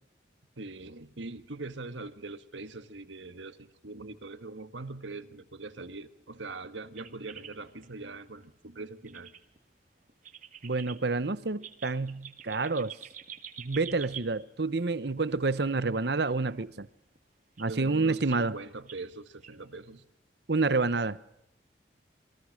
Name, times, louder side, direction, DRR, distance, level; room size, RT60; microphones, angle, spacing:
voice 1, 0.6-9.3 17.7-20.1, right 3 dB, 80° right, 11 dB, 1.5 m, -42 dB
sound 1, 7.0-8.1 8.4-8.5 8.8-8.9 9.1-9.6 10.1-11.0 11.5-14.5 15.8-15.9 17.2-17.3 17.6-17.7 18.3-18.6 18.9-19.0 19.4-19.5, right 9 dB, 40° right, 1.7 m, -46 dB
voice 2, 10.6-13.0 13.6-16.9 17.6-18.6 20.5-21.2, right 3 dB, 60° right, 16 dB, 0.8 m, -28 dB
28.0 x 22.0 x 6.4 m, 0.82 s
head